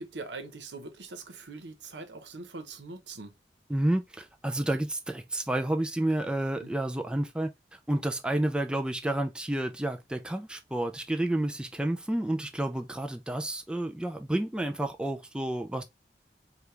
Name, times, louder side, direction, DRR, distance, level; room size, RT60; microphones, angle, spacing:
voice 1, 0.0-3.3 6.6-6.7, right 3 dB, 85° right, 0.9 m, -42 dB
voice 2, 3.7-7.5 7.9-15.8, right 1 dB, 5° right, 0.4 m, -30 dB
4.8 x 2.4 x 3.2 m
head